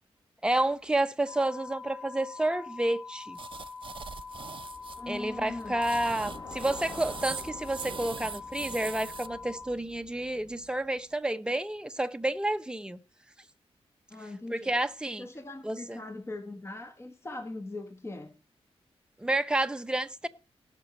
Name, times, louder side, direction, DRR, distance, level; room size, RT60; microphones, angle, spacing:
voice 1, 0.4-3.4 5.1-13.0 14.5-15.3 15.6-16.0 19.2-20.3, right 1 dB, 10° right, 0.9 m, -30 dB
sound 1, 1.3-9.7, left 4 dB, 60° left, 4.3 m, -44 dB
sound 2, 3.4-5.0 5.6-9.3, right 6 dB, 50° right, 0.7 m, -41 dB
Bicycle, 4.3-10.8, left 2 dB, 40° left, 3.7 m, -48 dB
voice 2, 5.0-5.8 14.1-14.8 15.2-18.3, left 2 dB, 25° left, 1.5 m, -40 dB
18.0 x 6.2 x 4.2 m
wide cardioid pair, 105°, 11 cm